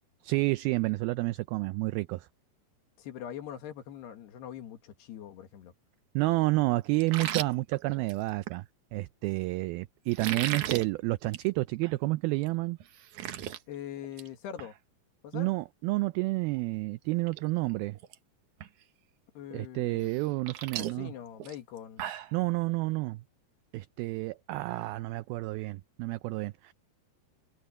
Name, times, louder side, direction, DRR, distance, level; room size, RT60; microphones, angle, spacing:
voice 1, 0.2-2.3 6.2-8.7 8.9-12.8 15.3-18.0 19.5-21.1 22.3-23.2 23.7-26.7, right 21 dB, 85° right, 2.1 m, -30 dB
voice 2, 3.0-5.7 13.7-14.7 15.2-15.5 19.4-20.2 20.8-22.1, left 10 dB, 80° left, 3.9 m, -42 dB
sound 1, 7.0-8.6 10.1-10.8 11.2-11.5 11.8-11.9 12.4-12.5 12.8-13.6 14.0-14.3 14.6-14.7 16.6-16.7 17.1-17.4 17.7-18.1 18.6-18.7 20.0-22.3, right 11 dB, 65° right, 2.0 m, -36 dB
omnidirectional pair, 4.8 m